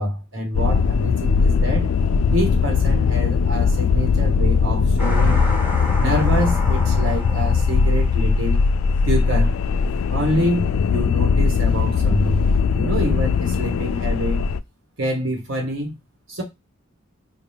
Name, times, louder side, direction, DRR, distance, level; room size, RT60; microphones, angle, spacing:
voice 1, 0.0-1.9 2.3-8.6 9.0-9.5 10.1-12.5 12.7-14.4 15.0-15.9 16.3-16.4, equal, 60° right, 1.4 m, -26 dB
sound 1, 0.5-14.6, left 5 dB, 75° left, 0.3 m, -19 dB
sound 2, 5.0-9.3, left 2 dB, 10° right, 1.3 m, -32 dB
4.5 x 2.3 x 3.2 m
head